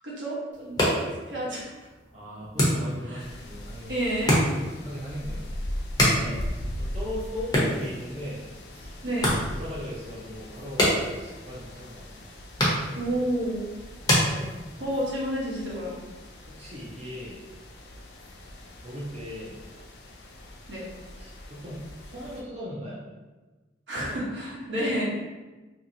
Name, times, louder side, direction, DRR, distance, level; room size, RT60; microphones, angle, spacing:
voice 1, 0.0-1.7 3.1-3.2 3.9-4.4 6.1-6.4 9.0-9.4 13.0-13.7 14.3-14.5 14.8-16.0 20.7-20.8 23.9-25.0, right 1 dB, 80° right, -6 dB, 1.0 m, -30 dB
sound 1, 0.5-15.0, equal, 20° left, 0.7 m, -29 dB
voice 2, 2.1-4.0 4.7-5.5 6.6-9.0 9.5-10.9 11.1-12.3 16.5-17.4 18.8-19.5 21.2-23.0, equal, 35° right, -7 dB, 0.5 m, -38 dB
sound 2, 3.2-22.4, left 1 dB, 60° left, 0.4 m, -40 dB
2.8 x 2.8 x 2.6 m, 1.2 s
head